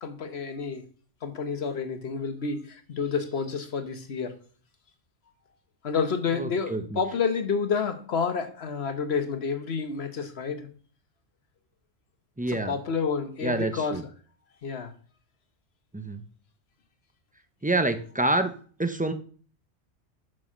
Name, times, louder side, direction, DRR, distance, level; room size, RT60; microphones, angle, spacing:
voice 1, 0.0-0.9 1.2-4.3 5.8-10.7 12.5-14.0 14.6-14.9, left 5 dB, 55° left, 8 dB, 1.3 m, -29 dB
voice 2, 6.3-7.0 12.4-12.8 13.4-14.0 15.9-16.2 17.6-18.5 18.8-19.1, right 2 dB, 10° right, 8 dB, 0.5 m, -27 dB
6.4 x 6.1 x 6.2 m, 0.44 s
omnidirectional pair, 1.3 m